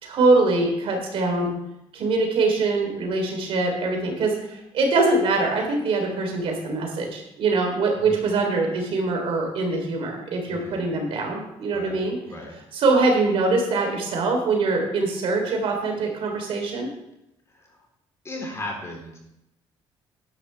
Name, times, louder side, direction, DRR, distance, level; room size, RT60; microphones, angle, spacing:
voice 1, 0.0-1.5 1.9-12.2 12.7-16.9, right 3 dB, 60° right, 2 dB, 3.5 m, -23 dB
voice 2, 10.5-10.8 11.7-12.0 12.3-12.6 17.5-17.8 18.2-19.2, left 1 dB, 25° left, 0 dB, 3.7 m, -36 dB
12.5 x 11.0 x 3.4 m, 0.85 s
cardioid pair, 110°, 10 cm